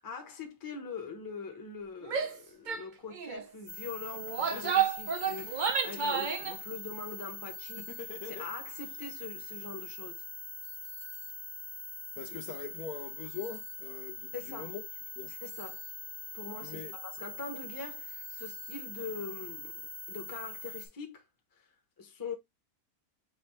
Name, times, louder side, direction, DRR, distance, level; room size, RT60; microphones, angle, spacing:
voice 1, 0.0-10.3 14.3-14.7 15.3-15.8 16.3-19.8 20.1-21.2 21.5-21.7 22.0-22.3, left 4 dB, 15° left, 0.7 m, -43 dB
Female speech woman speaking / Yell, 2.1-2.4 2.7-2.8 3.1-3.4 4.1-6.6, right 7 dB, 70° right, 0.4 m, -31 dB
sound 1, 3.7-20.9, left 1 dB, 55° right, 1.0 m, -43 dB
Laughter, 4.0-4.1 4.5-6.0 7.8-9.0, left 7 dB, 50° left, 1.3 m, -44 dB
voice 2, 12.2-14.8 15.2-15.3 16.6-16.9, left 7 dB, 70° left, 1.1 m, -42 dB
6.1 x 2.7 x 3.1 m
omnidirectional pair, 1.8 m